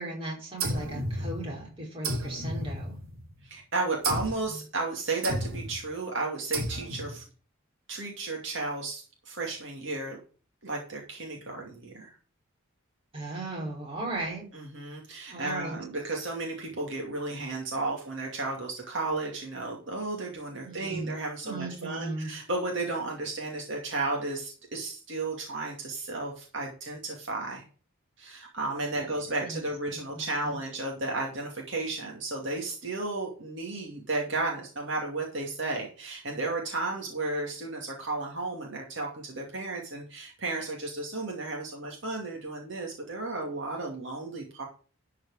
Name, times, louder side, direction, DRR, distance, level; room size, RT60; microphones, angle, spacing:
voice 1, 0.0-3.0 4.5-4.6 13.1-14.4 15.3-15.8 20.6-21.2 21.4-22.3 29.0-29.1 29.4-29.6 29.9-30.6, right 2 dB, 25° right, -3 dB, 4.8 m, -37 dB
sound 1, 0.6-1.6 2.0-3.3 4.0-4.5 5.2-5.8 6.5-7.2, right 1 dB, 90° right, 2.7 m, -33 dB
voice 2, 3.4-7.2 7.9-10.2 10.6-12.1 14.5-27.6 28.2-44.7, right 2 dB, 60° right, -1 dB, 2.4 m, -33 dB
12.0 x 5.0 x 6.3 m, 0.38 s
head